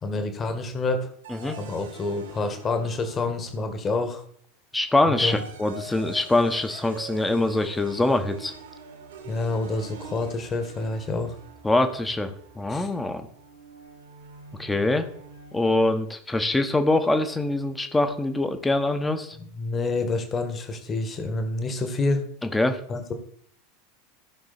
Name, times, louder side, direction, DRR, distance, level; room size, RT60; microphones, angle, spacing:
voice 1, 0.0-1.1 1.6-4.2 5.1-5.4 9.3-11.4 12.7-12.9 19.5-22.2 22.9-23.1, left 3 dB, 25° left, 7 dB, 1.8 m, -28 dB
sound 1, 1.2-3.8 4.9-16.0, right 3 dB, 65° right, 2.4 m, -45 dB
voice 2, 4.7-8.5 11.6-13.3 14.6-15.1 15.5-19.4 22.4-22.8, left 2 dB, 10° left, 8 dB, 1.3 m, -24 dB
15.0 x 5.9 x 4.3 m, 0.63 s
figure-of-eight pair, 80°, 0 cm